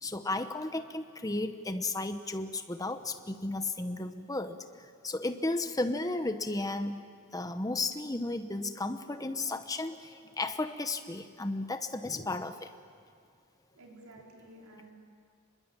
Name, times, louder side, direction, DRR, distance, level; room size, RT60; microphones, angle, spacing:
voice 1, 0.0-7.0 7.3-12.7, left 2 dB, 15° left, 9 dB, 1.0 m, -34 dB
voice 2, 13.7-14.9, right 1 dB, 80° right, -1 dB, 4.9 m, -52 dB
25.0 x 21.5 x 9.0 m, 2.2 s
head